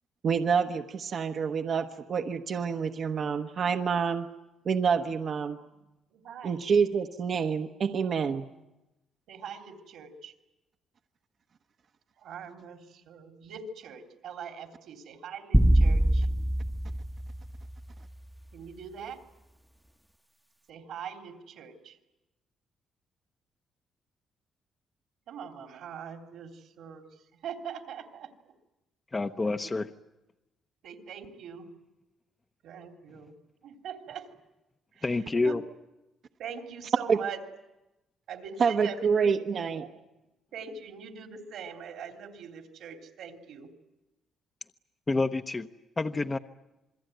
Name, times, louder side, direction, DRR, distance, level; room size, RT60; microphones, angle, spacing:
voice 1, 0.2-4.3 4.6-5.6 6.4-8.5 37.1-37.2 38.6-39.8, right 6 dB, 55° right, 6 dB, 1.0 m, -27 dB
voice 2, 6.1-6.6 9.3-10.3 12.2-16.3 18.5-19.2 20.7-22.0 25.3-27.0 27.4-28.3 29.6-29.7 30.8-31.7 32.6-33.3 33.6-34.3 34.9-35.1 35.4-35.6 36.4-37.4 38.3-40.0 40.5-43.7, right 6 dB, 80° right, 4 dB, 3.2 m, -42 dB
sound 1, 15.5-18.0, right 1 dB, ahead, 0.9 m, -24 dB
voice 3, 29.1-29.9 35.0-35.6 45.1-45.7 46.0-46.4, left 3 dB, 25° left, 8 dB, 0.9 m, -28 dB
27.5 x 21.5 x 9.2 m, 0.99 s
cardioid pair, 90°, 0 cm